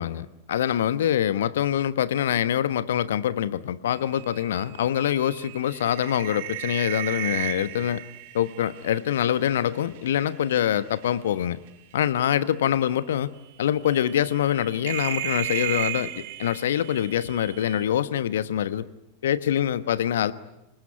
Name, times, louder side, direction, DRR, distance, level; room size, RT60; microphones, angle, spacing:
voice 1, 0.0-8.0 8.3-11.6 11.9-13.3 13.6-18.9 19.2-20.3, left 10 dB, 60° left, 14 dB, 1.2 m, -25 dB
sound 1, 4.0-10.3 10.6-11.1 12.2-12.3 12.8-12.9 13.8-17.8, right 16 dB, 50° right, 1.6 m, -35 dB
27.0 x 21.0 x 9.5 m, 0.92 s
figure-of-eight pair, 90°, 0 cm